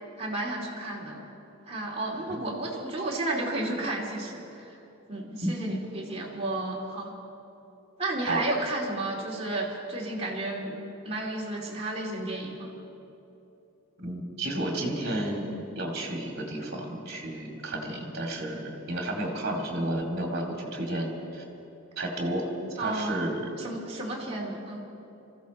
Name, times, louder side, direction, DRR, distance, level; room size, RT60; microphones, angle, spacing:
voice 1, 0.2-1.3 1.7-4.7 5.1-7.1 8.0-10.7 11.0-12.7 22.8-23.2 23.6-24.8, right 2 dB, 30° right, -3 dB, 2.4 m, -32 dB
voice 2, 14.0-15.5 15.8-21.4 22.0-22.5 22.7-23.5, right 1 dB, 50° right, 1 dB, 2.4 m, -31 dB
22.0 x 15.0 x 4.2 m, 2.9 s
head